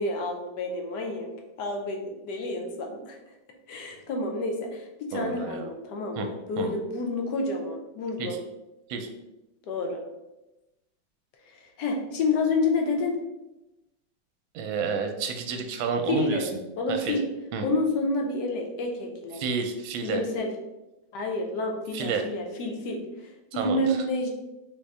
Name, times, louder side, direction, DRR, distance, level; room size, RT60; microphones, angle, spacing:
voice 1, 0.0-1.3 1.6-3.2 3.7-8.4 9.7-10.0 11.5-13.2 16.1-17.2 17.6-19.4 20.0-20.5 21.1-24.3, left 2 dB, 65° left, 2 dB, 1.2 m, -29 dB
voice 2, 5.1-5.7 6.2-6.3 6.6-6.7 8.2-8.4 8.9-9.1 14.5-16.5 16.9-17.1 17.5-17.6 19.4-20.2 21.9-22.2 23.5-24.0, right 5 dB, 80° right, 5 dB, 1.4 m, -30 dB
4.1 x 3.7 x 3.3 m, 0.98 s
omnidirectional pair, 2.2 m